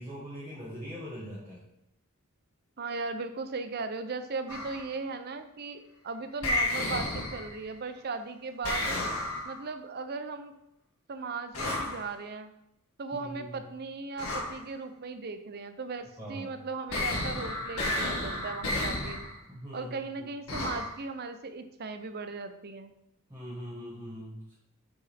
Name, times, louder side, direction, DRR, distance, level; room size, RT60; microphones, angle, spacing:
voice 1, 0.0-1.7 13.2-13.6 16.2-16.6 19.5-20.3 23.3-24.5, equal, 15° right, -8 dB, 1.5 m, -42 dB
voice 2, 2.8-9.0 9.4-10.5 11.1-12.5 13.0-19.2 19.7-22.9, right 4 dB, 50° right, 9 dB, 0.6 m, -37 dB
sound 1, 4.5-4.9 6.4-7.6 8.6-9.7 11.5-12.1 14.2-14.6 16.9-19.4 20.5-21.0, left 2 dB, 85° left, 1.7 m, -32 dB
7.7 x 4.7 x 3.5 m, 0.82 s
head